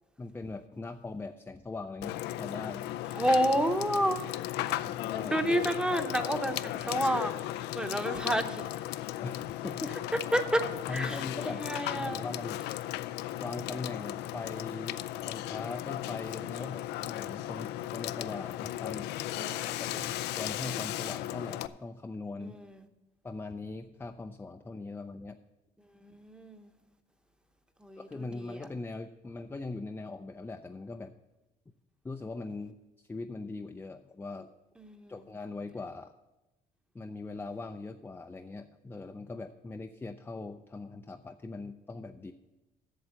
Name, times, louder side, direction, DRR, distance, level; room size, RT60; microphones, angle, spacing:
voice 1, 0.2-2.9 4.8-5.3 9.2-10.0 10.9-11.6 11.9-12.6 13.4-19.1 19.6-22.6 23.2-25.4 28.0-31.1 32.0-34.5 35.1-36.1 36.9-42.3, left 3 dB, 10° left, 7 dB, 0.4 m, -41 dB
Water / Water tap faucet / Sink (filling or washing), 2.0-21.7, left 14 dB, 85° left, 0.4 m, -36 dB
voice 2, 3.1-4.3 4.6-5.0 5.3-8.7 10.3-12.3 19.3-20.0 22.4-22.9 26.0-26.7 27.8-28.7 34.8-35.1, right 1 dB, 5° right, 7 dB, 0.9 m, -31 dB
8.1 x 6.8 x 7.6 m, 1.0 s
cardioid pair, 110°, 17 cm